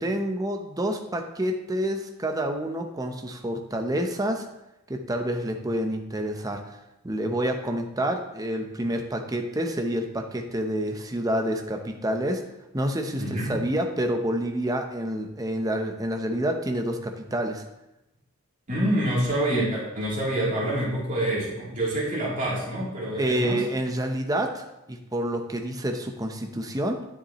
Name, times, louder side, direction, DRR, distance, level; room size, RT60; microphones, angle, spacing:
voice 1, 0.0-4.5 4.9-6.8 7.0-12.4 12.7-17.6 23.2-27.0, right 1 dB, 15° right, 4 dB, 0.7 m, -28 dB
voice 2, 13.1-13.6 18.7-23.7, right 1 dB, 35° right, -7 dB, 3.0 m, -27 dB
9.7 x 7.2 x 3.0 m, 0.90 s
head